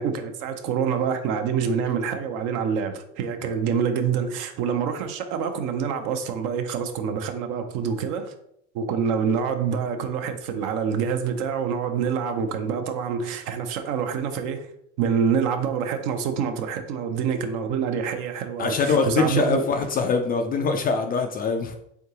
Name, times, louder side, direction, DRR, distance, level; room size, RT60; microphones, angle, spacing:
voice 1, 0.0-8.3 8.7-14.7 15.0-19.6, right 6 dB, 55° right, 0.7 m, -26 dB
voice 2, 18.6-21.7, left 4 dB, 25° left, 0.4 m, -23 dB
3.7 x 3.4 x 2.8 m
hypercardioid pair, 95°, 35 cm